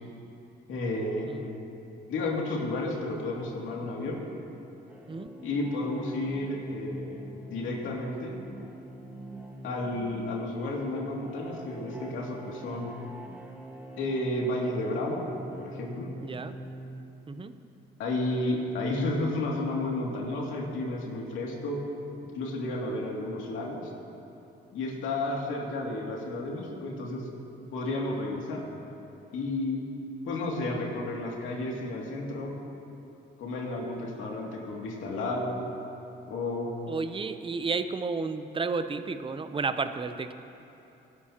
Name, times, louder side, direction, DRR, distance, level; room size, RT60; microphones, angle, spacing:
voice 1, 0.7-1.3 2.1-4.2 5.4-7.2 7.5-8.4 9.6-12.9 14.0-15.2 15.6-16.1 18.0-21.9 22.3-23.9 24.7-27.3 27.7-28.6 29.3-29.8 30.2-32.5 33.4-35.7 36.3-36.7, left 2 dB, 85° left, -2 dB, 2.5 m, -32 dB
sound 1, 2.9-17.0, right 1 dB, 10° right, 1.6 m, -44 dB
voice 2, 16.2-16.5 17.3-17.5 36.9-40.3, right 4 dB, 25° right, 10 dB, 0.7 m, -32 dB
22.0 x 11.5 x 2.9 m, 2.9 s
cardioid pair, 90°, 20 cm